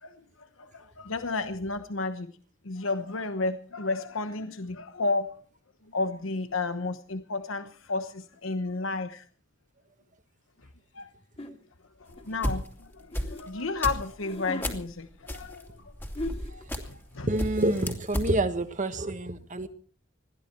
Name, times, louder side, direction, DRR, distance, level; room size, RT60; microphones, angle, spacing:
voice 1, 0.0-2.3 2.6-5.3 5.9-9.2 10.9-11.1 11.4-11.6 12.0-15.8 16.5-17.3, left 3 dB, 80° left, 10 dB, 1.1 m, -32 dB
sound 1, 11.4-11.6 12.2-13.4 14.1-14.8 15.8-15.9 16.1-16.6, left 1 dB, 30° left, 2.6 m, -38 dB
sound 2, 12.1-14.9 15.3-17.1 17.4-18.3, equal, 10° left, 2.7 m, -33 dB
voice 2, 17.2-19.7, right 1 dB, 40° right, 9 dB, 1.6 m, -28 dB
21.5 x 14.5 x 4.6 m, 0.43 s
head